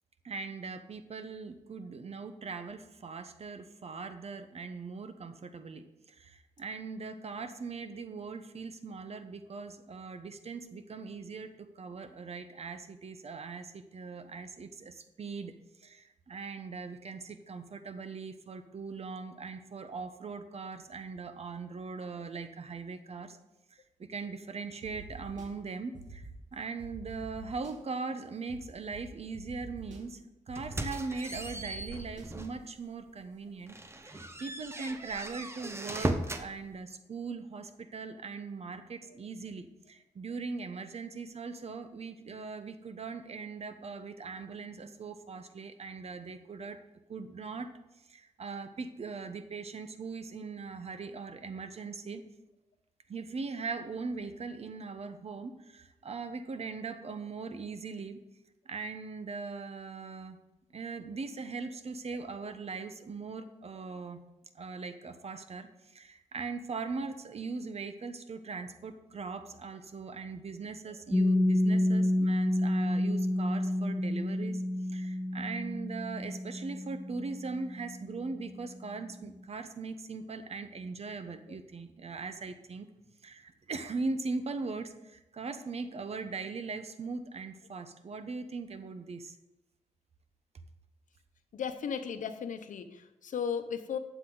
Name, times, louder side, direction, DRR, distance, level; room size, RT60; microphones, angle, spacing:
voice 1, 0.2-15.5 15.8-23.4 24.0-26.2 26.5-30.2 30.5-33.8 34.0-46.8 47.1-47.7 48.1-52.2 53.1-58.2 58.6-60.4 60.7-64.2 64.5-65.7 65.9-74.6 74.9-82.9 83.2-89.3, right 4 dB, 55° right, 9 dB, 1.0 m, -40 dB
sound 1, 24.8-25.5 25.9-26.3 26.8-27.7 28.5-28.6 28.9-29.0 29.3-30.0 30.5-30.9 31.3-32.2, right 3 dB, 75° right, 2.1 m, -46 dB
sound 2, 30.6-32.6 33.1-33.2 33.7-36.5, right 1 dB, 20° right, 0.9 m, -37 dB
Piano, 71.1-78.4, left 1 dB, 10° left, 0.5 m, -29 dB
voice 2, 91.5-94.0, left 7 dB, 75° left, 9 dB, 0.9 m, -35 dB
12.0 x 8.1 x 4.0 m, 0.95 s
cardioid pair, 90°, 13 cm